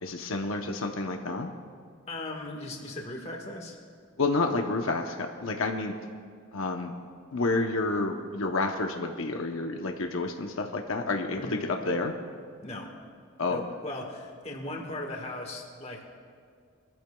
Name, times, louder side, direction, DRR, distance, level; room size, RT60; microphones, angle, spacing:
voice 1, 0.0-1.5 4.2-5.9 6.5-6.9 7.3-11.6 11.8-12.1 13.4-13.6, left 3 dB, 80° left, 3 dB, 0.8 m, -29 dB
voice 2, 2.1-3.8 11.4-11.7 12.6-12.9 13.5-16.2, left 1 dB, 30° left, 1 dB, 1.5 m, -38 dB
22.5 x 13.5 x 2.3 m, 2.1 s
head